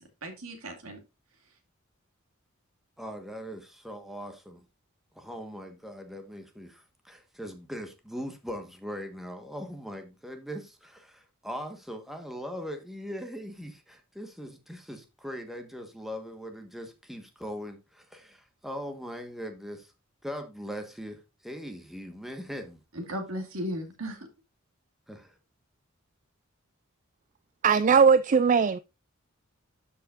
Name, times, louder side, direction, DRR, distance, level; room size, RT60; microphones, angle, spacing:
voice 1, 0.2-1.0 22.9-24.3, equal, 85° right, 2.2 m, -36 dB
voice 2, 3.0-4.6 5.1-19.9 20.2-22.8 25.1-25.3, equal, ahead, 1.3 m, -40 dB
voice 3, 27.6-28.8, right 6 dB, 35° right, 0.3 m, -19 dB
12.0 x 5.6 x 2.5 m
head